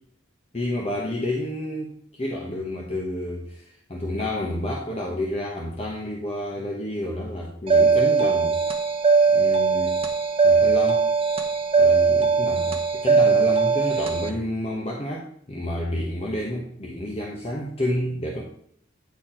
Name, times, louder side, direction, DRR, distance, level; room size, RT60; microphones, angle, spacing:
voice 1, 0.5-8.6 9.3-10.0 10.4-11.0 11.8-18.5, left 1 dB, 30° left, -1 dB, 1.1 m, -30 dB
sound 1, 7.7-14.3, right 5 dB, 30° right, 0.9 m, -20 dB
9.5 x 4.3 x 4.4 m, 0.66 s
head